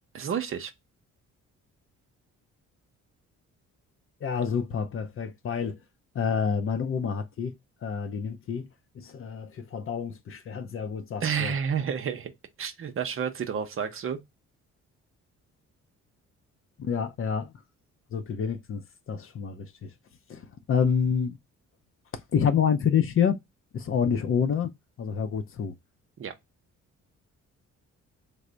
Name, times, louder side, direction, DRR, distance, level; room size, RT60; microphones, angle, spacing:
voice 1, 0.1-0.7 11.2-12.3 12.6-14.2 26.2-26.3, right 7 dB, 45° right, 0.6 m, -30 dB
voice 2, 4.2-5.8 6.1-7.5 7.8-8.7 9.0-11.5 16.8-17.5 18.1-19.9 20.3-21.4 22.3-23.4 23.7-24.7 25.0-25.7, left 7 dB, 45° left, 0.5 m, -28 dB
3.3 x 2.0 x 3.8 m
cardioid pair, 90°, 30 cm